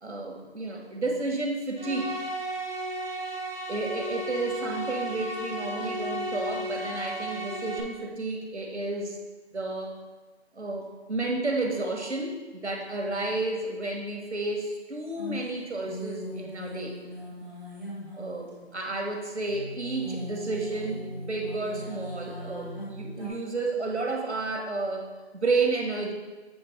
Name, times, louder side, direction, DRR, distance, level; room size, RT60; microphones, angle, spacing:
voice 1, 0.0-2.2 3.7-9.2 9.5-10.0 10.6-16.9 18.1-26.1, right 3 dB, 80° right, 2 dB, 1.5 m, -31 dB
sound 1, 1.8-7.8, right 1 dB, 55° right, 0.9 m, -34 dB
sound 2, 15.1-19.1 19.4-23.3, equal, 5° right, 2.2 m, -39 dB
7.9 x 3.2 x 5.1 m, 1.2 s
figure-of-eight pair, 165°, 34 cm